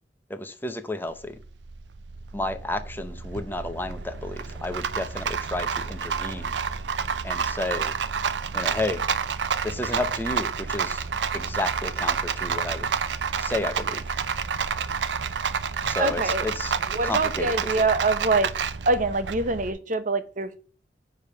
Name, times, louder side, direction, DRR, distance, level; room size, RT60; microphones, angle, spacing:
voice 1, 0.3-1.3 2.3-6.5 7.2-7.9 8.5-9.0 9.6-11.1 11.3-12.9 13.4-14.0 15.8-16.7 17.0-17.8, left 2 dB, 10° left, 0.7 m, -31 dB
Rattle, 1.1-19.7, right 6 dB, 85° right, 0.6 m, -29 dB
voice 2, 16.0-16.4 16.9-18.5 18.9-20.6, right 3 dB, 45° right, 0.8 m, -24 dB
9.9 x 3.5 x 6.6 m
head